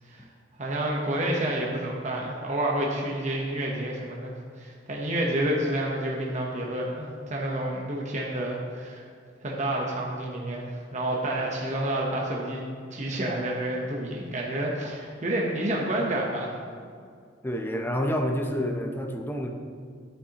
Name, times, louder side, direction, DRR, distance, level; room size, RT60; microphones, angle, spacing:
voice 1, 0.6-9.0 9.4-12.6 12.9-16.5, right 1 dB, 40° right, -2 dB, 0.9 m, -29 dB
voice 2, 17.4-19.5, equal, 10° left, 4 dB, 0.7 m, -28 dB
10.5 x 8.8 x 2.9 m, 2.2 s
head